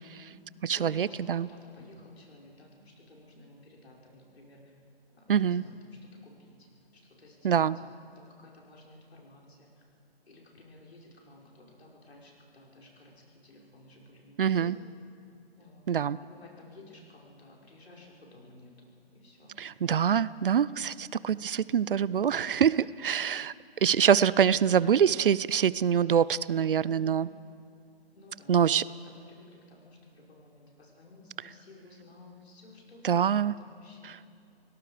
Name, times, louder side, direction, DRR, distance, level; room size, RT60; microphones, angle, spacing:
voice 1, 0.0-4.8 5.1-6.7 6.9-7.8 8.2-9.8 10.3-14.8 15.6-15.9 16.3-19.6 22.8-22.9 26.6-27.3 28.1-34.2, left 2 dB, 80° left, -2 dB, 5.4 m, -54 dB
voice 2, 0.6-1.5 5.3-5.6 7.4-7.8 14.4-14.7 15.9-16.2 19.6-23.5 23.8-27.3 28.5-28.9 33.0-33.5 34.0-34.1, right 8 dB, 60° right, 20 dB, 0.5 m, -25 dB
29.0 x 18.0 x 5.0 m, 2.5 s
hypercardioid pair, 170°, 31 cm